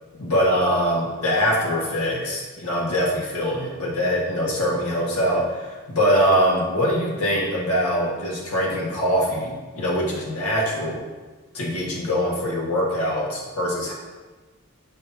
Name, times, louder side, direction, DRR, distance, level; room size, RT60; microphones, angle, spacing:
voice 1, 0.2-11.0 11.5-13.9, equal, 90° left, -4 dB, 1.7 m, -23 dB
7.6 x 6.5 x 2.8 m, 1.3 s
head